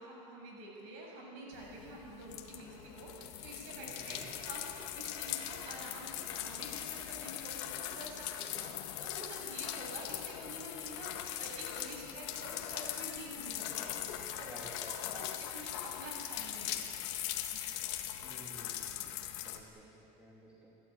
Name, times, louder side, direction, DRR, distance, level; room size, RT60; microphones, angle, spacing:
voice 1, 0.0-14.1 14.4-14.5 14.9-17.1 17.5-17.7, right 1 dB, 65° right, -2 dB, 7.6 m, -48 dB
sound 1, 1.5-19.6, left 12 dB, 80° left, 1.7 m, -41 dB
voice 2, 3.8-4.3 14.3-15.2 18.2-20.8, right 1 dB, 10° right, -5 dB, 2.9 m, -53 dB
29.5 x 12.5 x 8.8 m, 2.7 s
cardioid pair, 175°, 14 cm